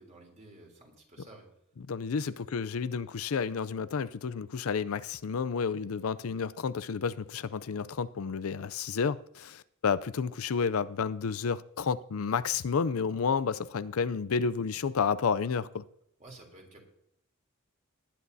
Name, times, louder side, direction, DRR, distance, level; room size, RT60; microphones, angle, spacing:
voice 1, 0.0-1.5 2.2-2.3 16.2-16.8, right 2 dB, 35° right, 3.3 m, -52 dB
voice 2, 1.8-15.8, left 6 dB, 85° left, 0.5 m, -31 dB
19.0 x 10.5 x 2.7 m
head